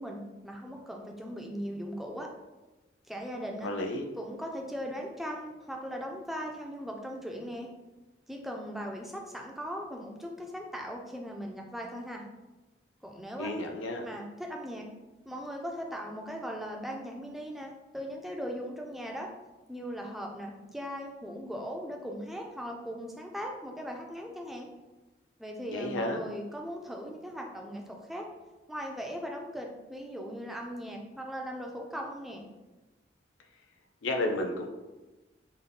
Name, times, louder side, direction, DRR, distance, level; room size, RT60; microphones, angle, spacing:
voice 1, 0.0-2.3 3.1-3.7 4.2-7.7 8.3-12.2 13.0-13.5 14.0-14.9 15.3-19.3 19.7-24.7 25.4-28.3 28.7-32.5, equal, ahead, 0 dB, 0.4 m, -39 dB
voice 2, 3.6-4.1 13.4-14.1 25.7-26.2 34.0-34.7, left 1 dB, 85° left, 3 dB, 0.5 m, -32 dB
3.7 x 2.1 x 3.7 m, 1.1 s
head